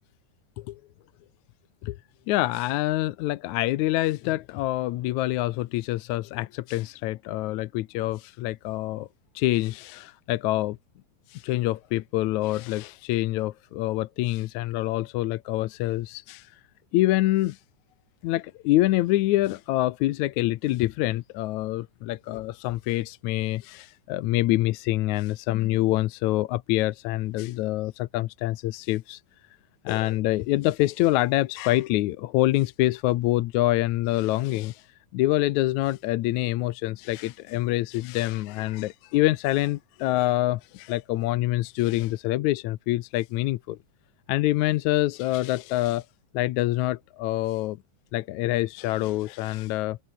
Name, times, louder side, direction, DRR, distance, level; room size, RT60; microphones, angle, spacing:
voice 1, 2.3-9.1 9.4-10.8 11.3-16.5 16.9-17.6 18.2-29.2 29.9-34.9 35.1-43.8 44.3-46.1 46.3-47.8 48.1-50.0, left 16 dB, 75° left, 2.0 m, -26 dB
omnidirectional pair, 3.7 m